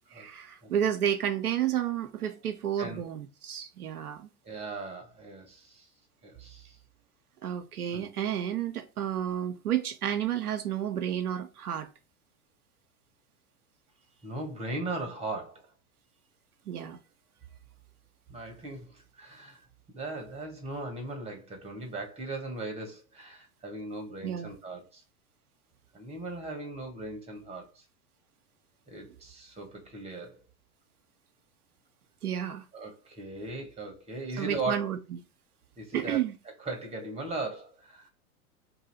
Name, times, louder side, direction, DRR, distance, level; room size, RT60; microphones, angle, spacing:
voice 1, 0.1-4.3 7.4-11.9 16.7-17.0 24.2-24.5 32.2-32.6 34.4-35.0 35.9-36.4, right 10 dB, 85° right, 0.6 m, -31 dB
voice 2, 4.4-5.9 6.2-6.7 7.9-8.1 14.2-15.7 18.3-19.6 19.9-25.0 25.9-27.8 28.9-30.4 32.7-34.9 35.8-36.2 36.6-38.1, right 2 dB, 15° right, 1.1 m, -38 dB
2.7 x 2.7 x 4.0 m
hypercardioid pair, 95°, 44 cm